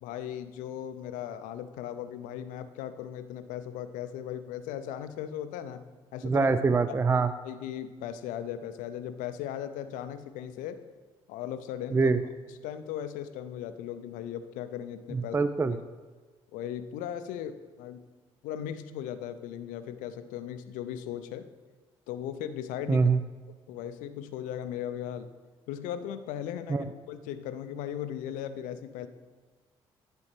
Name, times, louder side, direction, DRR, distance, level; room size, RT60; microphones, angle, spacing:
voice 1, 0.0-5.8 6.1-6.5 7.4-10.8 11.3-12.1 12.5-15.4 15.7-15.8 16.5-18.0 18.4-21.5 22.1-23.1 23.7-25.3 25.7-29.1, left 10 dB, 75° left, 11 dB, 0.5 m, -37 dB
voice 2, 6.2-7.3 11.9-12.2 15.1-15.8 22.9-23.2 26.7-26.9, right 4 dB, 20° right, 11 dB, 0.3 m, -24 dB
10.5 x 4.2 x 3.3 m, 1.4 s
hypercardioid pair, 45°, 14 cm